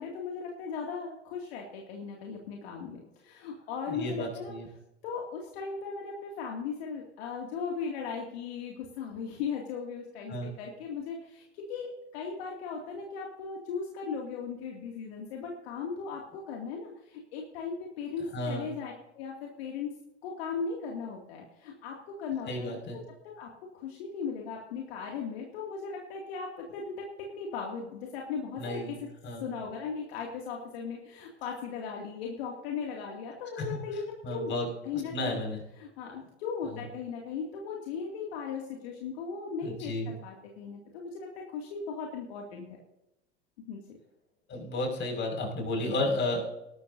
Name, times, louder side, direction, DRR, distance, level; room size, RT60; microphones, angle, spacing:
voice 1, 0.0-4.5 5.0-19.9 20.2-22.8 23.4-29.0 29.4-34.5 34.8-35.4 35.8-42.7 43.7-44.0, left 5 dB, 60° left, 0 dB, 2.5 m, -37 dB
voice 2, 3.9-4.7 10.3-10.5 18.3-18.7 22.5-23.0 28.6-29.0 29.2-29.5 33.6-33.7 34.2-34.7 34.9-35.6 36.6-36.9 39.6-40.1 44.5-46.5, left 1 dB, 35° left, 1 dB, 5.7 m, -32 dB
19.5 x 12.5 x 2.7 m, 0.90 s
hypercardioid pair, 85°, 34 cm